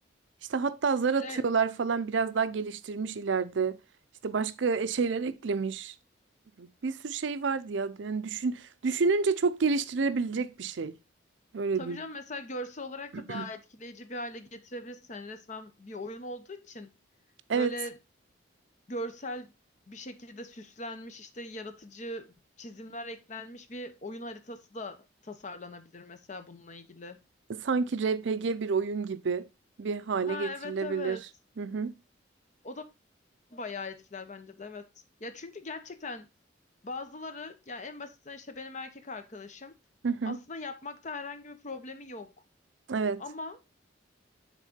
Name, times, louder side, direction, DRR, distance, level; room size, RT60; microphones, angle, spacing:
voice 1, 0.5-3.8 4.2-5.9 6.6-11.0 11.5-12.0 13.1-13.5 17.5-17.7 27.5-29.5 29.8-31.2 31.6-31.9 40.0-40.4 42.9-43.2, right 5 dB, 75° right, 0.5 m, -29 dB
voice 2, 1.1-1.4 11.8-16.9 17.5-18.0 18.9-19.5 19.9-25.0 25.2-27.2 30.3-31.2 32.6-32.9 33.5-34.9 35.2-36.3 36.8-39.7 40.2-42.3 43.2-43.6, left 2 dB, 40° left, 0.7 m, -40 dB
6.4 x 3.6 x 5.0 m
head